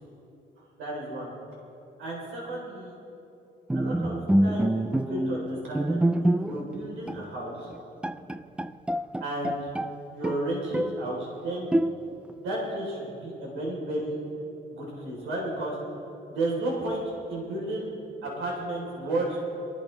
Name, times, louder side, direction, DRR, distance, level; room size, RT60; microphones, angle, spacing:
voice 1, 0.6-1.3 2.0-2.9 3.7-7.7 9.2-9.7 10.1-11.7 12.4-14.2 14.7-15.8 16.3-17.9 18.2-19.4, right 1 dB, 80° right, -3 dB, 3.9 m, -33 dB
Bowed string instrument, 3.7-6.7 7.1-7.3 7.7-7.8 8.0-9.9 10.2-11.1 11.7-12.3, right 1 dB, 5° right, 0.3 m, -26 dB
23.0 x 13.5 x 3.4 m, 3.0 s
cardioid pair, 90°, 20 cm